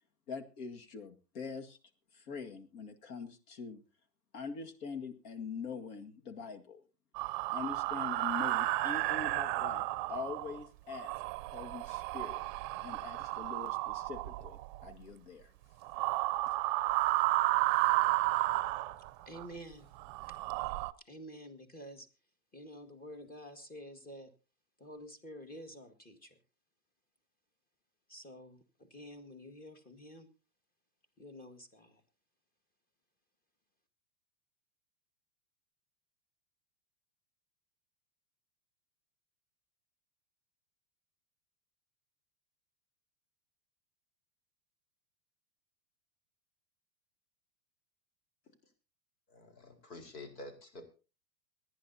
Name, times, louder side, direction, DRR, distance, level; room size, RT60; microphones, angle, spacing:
voice 1, 0.3-1.8 2.1-3.8 4.3-6.8 7.5-11.1 11.5-12.4 12.8-15.5, left 5 dB, 60° left, 6 dB, 2.0 m, -43 dB
Ghost Breath, 7.2-10.6 10.9-14.9 15.8-19.5 19.9-20.9, right 18 dB, 40° right, 0.6 m, -32 dB
voice 2, 19.3-19.9 21.1-22.1 22.5-24.3 24.8-26.4 28.1-30.3 31.2-32.0, equal, 20° left, 8 dB, 1.9 m, -49 dB
voice 3, 49.3-50.9, left 2 dB, 80° left, 3 dB, 4.4 m, -49 dB
26.5 x 10.5 x 2.8 m, 0.34 s
hypercardioid pair, 120°, 49 cm